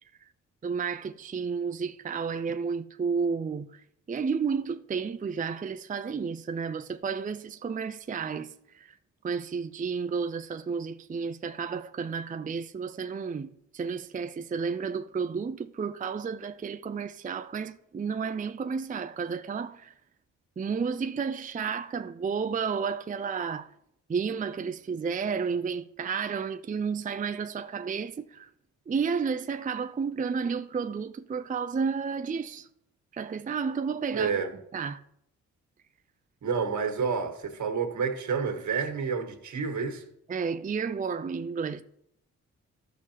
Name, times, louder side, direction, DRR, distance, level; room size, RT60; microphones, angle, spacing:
voice 1, 0.6-3.8 4.1-9.0 9.2-19.9 20.6-23.7 24.1-28.5 28.9-32.7 33.1-34.3 34.7-35.0 40.3-41.8, right 5 dB, 25° right, 0.5 m, -32 dB
voice 2, 34.1-34.5 36.4-40.0, right 5 dB, 55° right, 1.7 m, -29 dB
13.5 x 6.1 x 3.0 m
hypercardioid pair, 45°, 35 cm